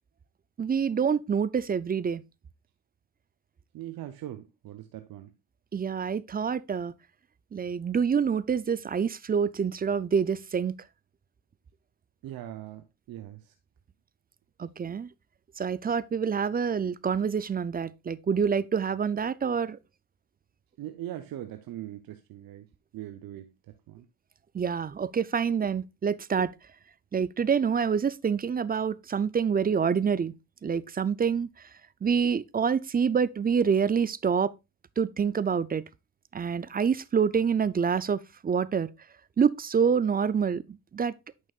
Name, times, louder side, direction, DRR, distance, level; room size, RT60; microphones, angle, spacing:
voice 1, 0.6-2.2 5.7-6.9 7.5-10.7 14.6-15.1 15.6-19.8 24.5-26.5 27.1-30.3 30.6-31.5 32.0-34.5 35.0-35.8 36.3-38.9 39.4-40.6 40.9-41.1, right 6 dB, 25° right, 0.4 m, -26 dB
voice 2, 3.7-5.3 12.2-13.5 20.8-22.7 22.9-23.5 23.9-24.1, right 13 dB, 70° right, 0.8 m, -40 dB
9.2 x 6.4 x 2.4 m
supercardioid pair, 70°, 37 cm